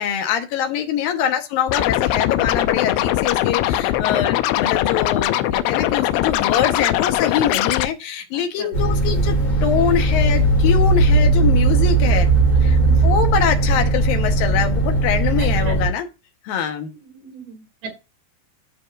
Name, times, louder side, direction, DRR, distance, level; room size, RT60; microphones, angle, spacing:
voice 1, 0.0-12.3 12.6-16.1 16.4-16.9, left 9 dB, 70° left, 6 dB, 2.5 m, -24 dB
Scratching (performance technique), 1.7-7.9, left 13 dB, 90° left, 3.0 m, -21 dB
voice 2, 8.3-8.7 12.5-12.9 15.4-15.8 16.9-18.0, right 5 dB, 75° right, 5 dB, 4.2 m, -38 dB
sound 1, 8.7-15.9, right 2 dB, 50° left, 4.5 m, -17 dB
13.5 x 5.1 x 2.5 m, 0.26 s
omnidirectional pair, 5.0 m